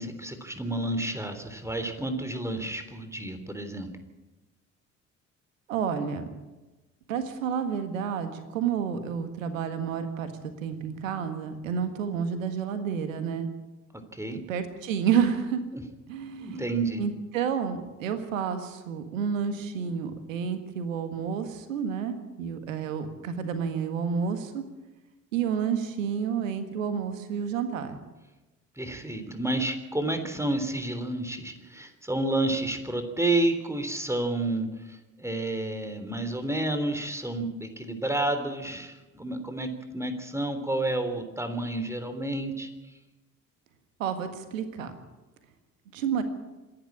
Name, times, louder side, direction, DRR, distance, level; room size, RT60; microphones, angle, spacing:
voice 1, 0.0-3.9 14.1-14.4 16.4-17.0 28.8-39.7 39.9-42.7, right 2 dB, 5° right, 8 dB, 3.5 m, -30 dB
voice 2, 5.7-6.2 7.1-10.3 10.6-13.5 14.5-15.6 16.1-16.6 17.0-24.6 25.3-28.0 44.0-44.9 45.9-46.2, right 7 dB, 75° right, 9 dB, 1.7 m, -30 dB
26.5 x 11.0 x 8.8 m, 1.1 s
figure-of-eight pair, 45°, 39 cm